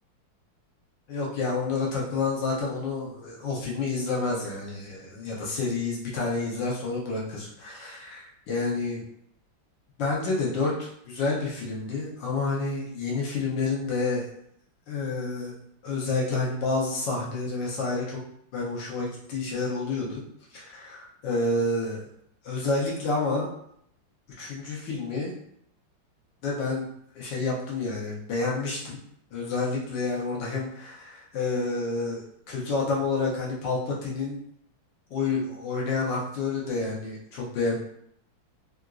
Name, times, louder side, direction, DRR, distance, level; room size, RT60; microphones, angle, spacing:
voice 1, 1.1-9.0 10.0-14.3 14.9-15.5 15.8-18.2 18.5-20.2 20.5-22.0 22.4-23.5 24.4-25.3 26.4-26.9 27.1-29.0 29.3-34.4 35.1-37.8, left 3 dB, 70° left, -3 dB, 1.4 m, -29 dB
3.7 x 2.5 x 2.3 m, 0.71 s
omnidirectional pair, 2.1 m